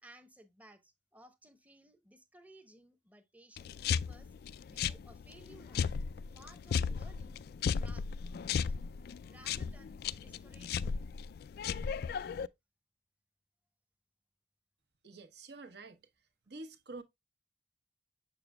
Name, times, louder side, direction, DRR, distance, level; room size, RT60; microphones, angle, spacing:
voice 1, 0.0-4.3 4.7-7.4 7.7-8.1 9.3-11.0, right 1 dB, 10° right, 0.8 m, -59 dB
sound 1, 3.6-12.5, left 6 dB, 55° left, 0.3 m, -36 dB
voice 2, 15.0-16.1 16.5-17.0, right 3 dB, 60° right, 1.1 m, -48 dB
6.9 x 6.8 x 2.2 m
head